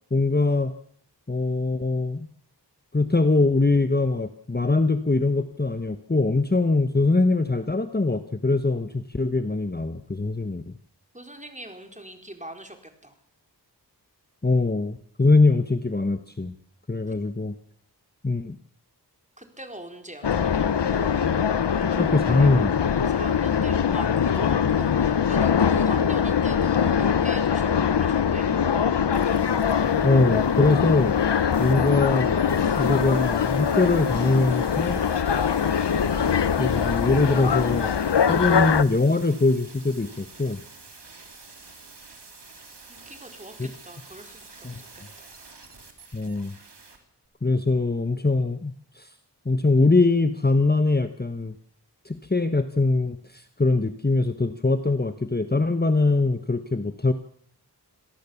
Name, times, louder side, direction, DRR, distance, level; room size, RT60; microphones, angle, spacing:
voice 1, 0.1-0.7 1.3-2.3 2.9-10.8 14.4-16.5 16.9-17.5 18.2-18.6 22.0-22.8 30.0-31.1 31.6-32.4 32.7-35.0 36.6-37.9 38.3-40.6 43.6-43.7 44.6-44.8 46.1-46.6 47.4-49.1 49.4-51.5 52.0-57.1, left 3 dB, 25° left, 9 dB, 1.2 m, -22 dB
voice 2, 11.1-13.1 17.1-17.2 19.4-22.5 23.1-28.5 42.9-44.9 45.2-45.3, right 1 dB, 15° right, 5 dB, 4.5 m, -42 dB
sound 1, 20.2-38.8, left 7 dB, 80° left, 0.9 m, -22 dB
sound 2, 29.1-47.0 47.3-47.4, right 3 dB, 75° right, 3.9 m, -48 dB
26.0 x 18.0 x 7.2 m, 0.64 s
wide cardioid pair, 60°, 41 cm